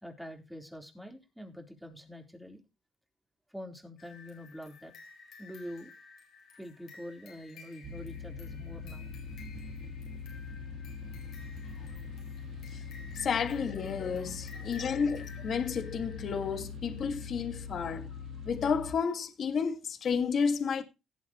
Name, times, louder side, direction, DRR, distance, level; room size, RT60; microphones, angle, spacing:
voice 1, 0.0-2.6 3.5-4.9 5.4-5.9 6.5-9.1, equal, ahead, 3.7 m, -45 dB
sound 1, 4.0-16.6, left 5 dB, 80° left, 4.4 m, -54 dB
sound 2, 7.8-18.9, left 5 dB, 70° right, 2.0 m, -42 dB
voice 2, 13.1-18.1 18.5-20.8, left 6 dB, 55° left, 1.8 m, -31 dB
17.5 x 7.5 x 3.0 m
cardioid pair, 90°, 0 cm